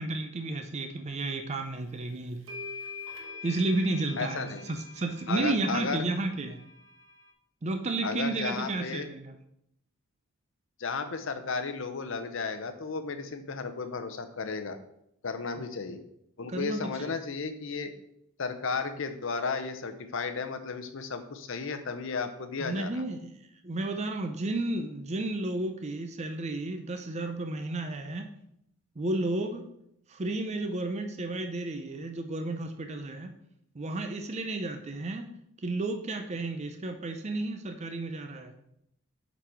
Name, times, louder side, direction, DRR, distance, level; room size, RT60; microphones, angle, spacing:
voice 1, 0.0-2.4 3.4-6.6 7.6-9.3 15.6-15.7 16.5-17.1 22.6-23.4 23.6-28.3 29.0-29.6 30.1-33.3 33.7-35.3 35.6-38.5, right 2 dB, 30° right, 6 dB, 0.5 m, -32 dB
sound 1, 1.9-2.0 2.5-7.3, left 4 dB, 65° right, 1.3 m, -45 dB
voice 2, 4.2-4.7 5.3-6.0 8.0-9.1 10.8-14.8 15.2-16.0 16.4-17.9 18.4-22.9, left 4 dB, 65° left, 9 dB, 0.7 m, -34 dB
8.0 x 4.1 x 4.5 m, 0.75 s
head